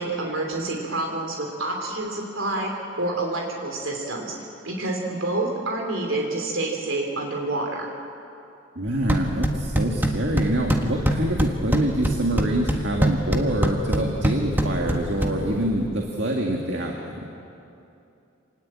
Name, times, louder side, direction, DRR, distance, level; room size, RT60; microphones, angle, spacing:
voice 1, 0.0-2.7 3.0-4.3 4.6-7.9, right 2 dB, 90° right, 0 dB, 3.1 m, -28 dB
voice 2, 8.8-17.3, right 1 dB, 60° right, 0 dB, 2.1 m, -26 dB
sound 1, 8.9-15.9, equal, 10° right, 1.6 m, -25 dB
26.5 x 19.0 x 8.8 m, 2.7 s
head